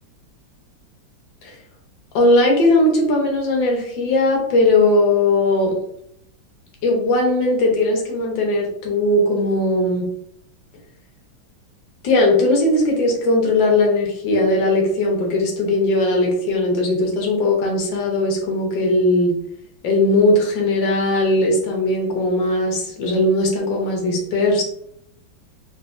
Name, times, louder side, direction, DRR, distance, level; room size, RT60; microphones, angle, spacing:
voice 1, 2.1-5.7 6.8-10.1 12.0-19.3 19.8-24.6, left 2 dB, 75° left, 1 dB, 1.5 m, -18 dB
3.9 x 2.5 x 2.4 m, 0.70 s
omnidirectional pair, 2.1 m